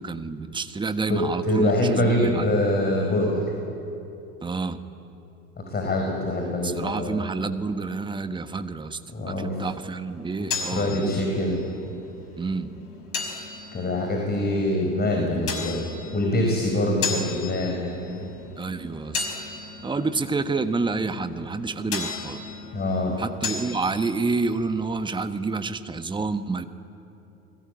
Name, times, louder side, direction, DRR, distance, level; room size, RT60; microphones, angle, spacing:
voice 1, 0.0-2.5 4.4-4.8 6.6-11.3 12.4-12.7 18.6-19.3 19.8-22.4 23.2-26.7, right 4 dB, 10° right, 10 dB, 1.2 m, -28 dB
voice 2, 1.4-3.4 5.7-7.2 9.1-9.6 10.4-11.6 13.7-15.9 16.1-18.3 22.7-23.2, left 1 dB, 20° left, 2 dB, 5.1 m, -24 dB
sound 1, 10.1-25.6, left 5 dB, 70° left, 5.5 m, -36 dB
28.5 x 21.0 x 9.0 m, 2.9 s
figure-of-eight pair, 85°, 46 cm